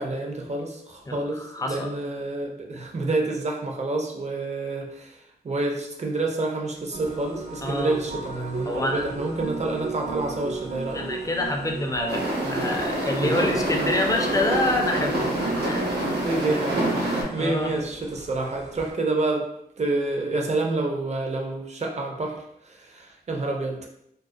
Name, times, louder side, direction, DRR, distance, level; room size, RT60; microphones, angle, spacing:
voice 1, 0.0-11.1 13.2-13.6 16.1-19.4 19.8-22.4 22.6-23.9, right 2 dB, 45° right, 1 dB, 0.5 m, -28 dB
voice 2, 1.1-1.9 7.6-8.0 8.7-9.0 10.9-15.3 15.6-15.9 17.4-17.7, left 2 dB, 20° left, 2 dB, 0.4 m, -27 dB
sound 1, 6.9-18.9, right 3 dB, 65° right, 0.9 m, -34 dB
sound 2, 12.1-17.2, right 1 dB, 90° right, 0.7 m, -27 dB
2.3 x 2.1 x 2.6 m, 0.76 s
wide cardioid pair, 75°, 16 cm